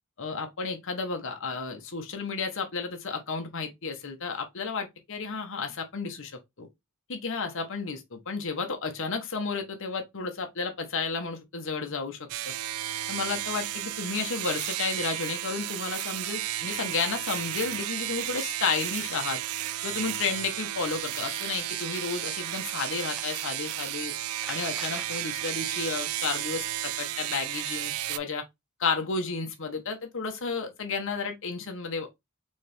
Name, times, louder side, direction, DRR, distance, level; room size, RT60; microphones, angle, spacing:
voice 1, 0.2-6.3 6.6-6.7 7.1-12.5 13.1-19.4 19.8-24.1 24.5-28.4 28.8-32.2, left 4 dB, 65° left, 1.0 m, -32 dB
sound 1, 12.3-28.2, right 14 dB, 85° right, 0.4 m, -33 dB
sound 2, 23.0-23.3 24.3-25.2 26.1-26.4 28.9-29.0 29.2-29.3 30.4-30.5, right 1 dB, 5° right, 0.6 m, -44 dB
4.2 x 3.2 x 3.4 m
head